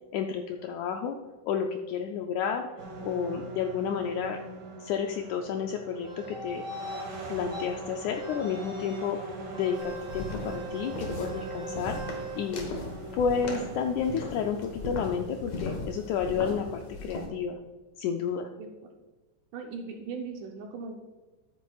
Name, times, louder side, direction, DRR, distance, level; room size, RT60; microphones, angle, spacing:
voice 1, 0.1-1.2 1.5-2.7 3.0-4.4 4.8-6.6 7.3-9.2 9.5-12.0 12.3-12.7 13.1-17.6 18.0-18.5, left 7 dB, 85° left, 4 dB, 1.6 m, -31 dB
sound 1, 2.8-16.6, right 2 dB, 55° right, 1.1 m, -42 dB
sound 2, 6.0-7.1 7.5-7.7 8.1-9.1 9.5-12.4, right 2 dB, ahead, 1.3 m, -41 dB
sound 3, 9.7-17.3, left 2 dB, 60° left, 2.3 m, -38 dB
voice 2, 18.6-18.9 19.5-20.9, right 5 dB, 75° right, 2 dB, 2.1 m, -39 dB
13.5 x 8.1 x 2.3 m, 1.2 s
omnidirectional pair, 3.9 m